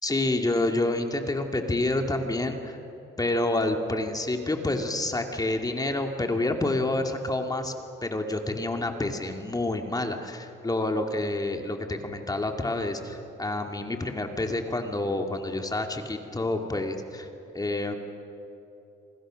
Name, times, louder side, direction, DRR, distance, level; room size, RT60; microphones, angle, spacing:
voice 1, 0.0-2.8 3.2-7.7 8.0-17.3 17.5-18.0, left 2 dB, 20° left, 4 dB, 2.4 m, -28 dB
26.5 x 26.0 x 6.4 m, 2.9 s
cardioid pair, 90°, 20 cm